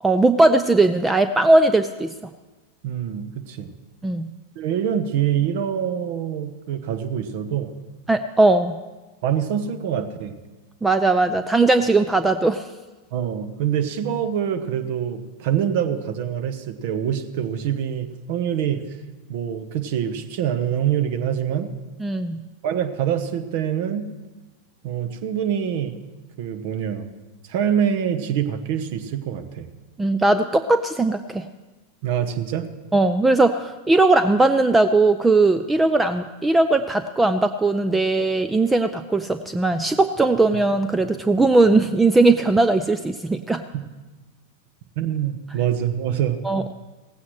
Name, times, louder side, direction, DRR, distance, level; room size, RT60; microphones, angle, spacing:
voice 1, 0.0-2.1 4.0-4.3 8.1-8.8 10.8-12.7 22.0-22.4 30.0-31.5 32.9-43.6 46.4-46.7, right 2 dB, 10° right, 11 dB, 0.4 m, -19 dB
voice 2, 2.8-3.7 4.6-7.7 9.2-10.3 13.1-18.8 19.3-21.7 22.6-24.1 24.8-26.0 26.4-27.1 27.5-29.7 32.0-32.7 45.0-46.4, right 9 dB, 50° right, 11 dB, 1.0 m, -25 dB
17.0 x 15.5 x 3.2 m, 1.2 s
figure-of-eight pair, 90°, 0 cm